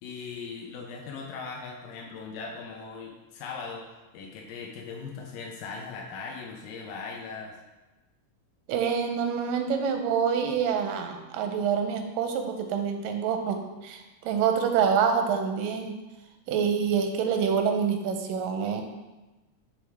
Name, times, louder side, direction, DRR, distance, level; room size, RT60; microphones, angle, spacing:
voice 1, 0.0-3.8 4.1-7.6, left 5 dB, 90° left, -1 dB, 2.4 m, -39 dB
voice 2, 8.7-16.0 16.5-18.8, right 7 dB, 90° right, 5 dB, 2.3 m, -26 dB
10.0 x 3.6 x 3.4 m, 1.1 s
omnidirectional pair, 3.7 m